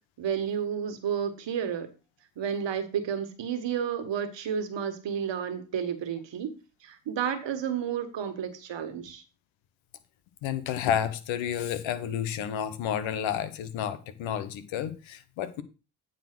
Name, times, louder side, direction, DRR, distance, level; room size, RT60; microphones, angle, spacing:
voice 1, 0.2-1.9 2.4-6.5 6.8-9.2, right 8 dB, 70° right, 1.6 m, -31 dB
voice 2, 10.4-15.6, left 9 dB, 85° left, 1.0 m, -31 dB
8.9 x 4.1 x 6.0 m
hypercardioid pair, 40°, 46 cm